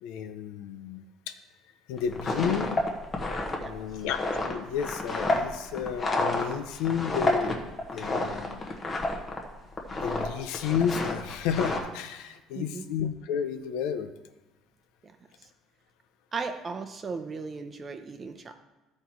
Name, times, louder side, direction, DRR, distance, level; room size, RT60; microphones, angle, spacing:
voice 1, 0.0-1.3 1.9-2.8 3.6-7.7 7.9-8.6 9.9-14.1, left 8 dB, 90° left, 9 dB, 0.7 m, -32 dB
sound 1, 2.0-9.4 9.7-10.3 10.5-11.8, left 2 dB, 25° left, 1.1 m, -29 dB
voice 2, 12.5-12.8 15.0-15.2 16.3-18.5, right 4 dB, 25° right, 8 dB, 0.7 m, -36 dB
13.0 x 4.4 x 4.6 m, 1.1 s
cardioid pair, 145°, 0 cm